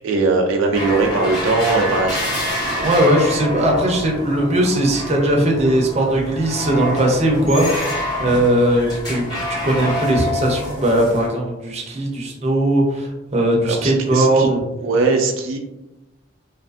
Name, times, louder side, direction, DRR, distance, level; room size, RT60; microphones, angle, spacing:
voice 1, 0.0-2.4 13.6-14.5 14.8-15.6, right 3 dB, 85° right, 2 dB, 0.4 m, -20 dB
sound 1, 0.7-11.3, left 1 dB, 20° left, 1.1 m, -27 dB
voice 2, 2.8-7.7 8.2-14.6, right 1 dB, 35° right, -1 dB, 0.5 m, -18 dB
2.5 x 2.5 x 2.4 m, 0.95 s
head